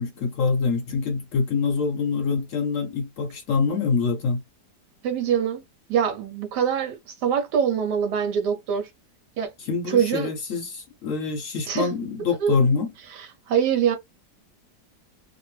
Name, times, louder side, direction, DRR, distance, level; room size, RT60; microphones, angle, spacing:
voice 1, 0.0-4.4 9.6-12.9, left 4 dB, 65° left, 0.9 m, -25 dB
voice 2, 5.0-5.6 5.9-8.9 9.4-9.5 9.9-10.3 11.7-11.9 12.4-12.5 13.1-14.0, right 8 dB, 80° right, 1.3 m, -24 dB
2.9 x 2.2 x 3.1 m
omnidirectional pair, 1.8 m